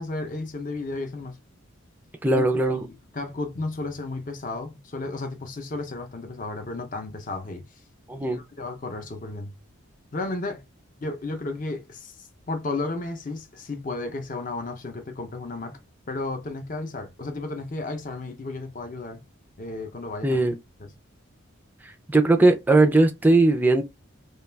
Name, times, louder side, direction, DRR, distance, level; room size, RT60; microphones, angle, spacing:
voice 1, 0.0-1.4 2.3-2.4 2.7-2.9 3.1-7.6 8.2-9.5 10.1-10.6 11.0-15.8 16.1-19.2 19.6-20.4 20.8-20.9, left 3 dB, 40° left, 0.6 m, -33 dB
voice 2, 2.2-2.8 8.1-8.4 20.2-20.5 21.8-23.8, right 2 dB, 10° right, 0.4 m, -19 dB
2.3 x 2.3 x 3.2 m
head